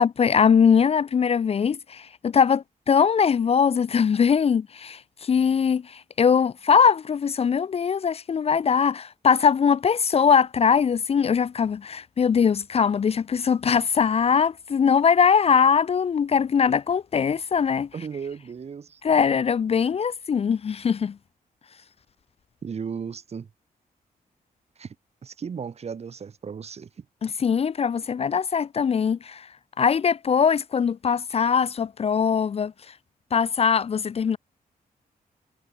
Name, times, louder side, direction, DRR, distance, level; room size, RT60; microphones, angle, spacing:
voice 1, 0.0-17.9 19.0-21.2 27.2-29.5 29.8-32.7 33.3-34.4, left 6 dB, 40° left, 0.8 m, -21 dB
voice 2, 17.9-19.0 22.6-23.5 24.8-24.9 25.2-27.0, right 6 dB, 45° right, 6.6 m, -35 dB
wide cardioid pair, 175°, 16 cm